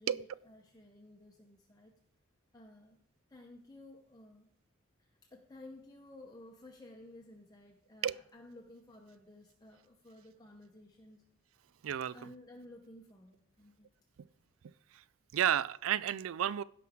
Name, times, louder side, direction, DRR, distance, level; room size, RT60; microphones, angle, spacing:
voice 1, 0.0-2.0 2.5-3.0 3.3-4.5 5.0-11.2 12.1-13.9, left 1 dB, 20° left, 0.8 m, -55 dB
voice 2, 11.8-12.3 14.6-15.0 15.3-16.6, right 10 dB, 80° right, 0.4 m, -32 dB
16.0 x 6.0 x 3.7 m
head